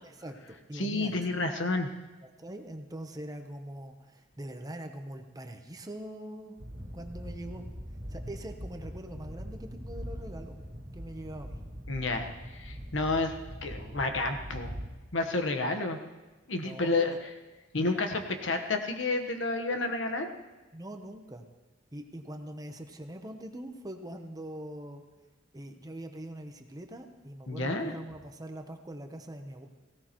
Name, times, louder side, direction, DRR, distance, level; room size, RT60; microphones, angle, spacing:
voice 1, 0.0-1.2 2.2-6.6 6.9-7.7 8.1-10.6 10.9-11.6 16.6-17.2 20.7-21.4 21.9-25.0 25.5-29.7, right 1 dB, 20° right, 5 dB, 0.8 m, -43 dB
voice 2, 0.8-1.9 11.9-13.3 13.6-14.7 15.1-16.0 16.5-17.3 17.7-20.3 27.5-27.9, left 2 dB, 70° left, 5 dB, 1.2 m, -30 dB
sound 1, 6.6-14.9, equal, 55° right, 2.1 m, -42 dB
18.0 x 16.5 x 3.0 m, 1.1 s
head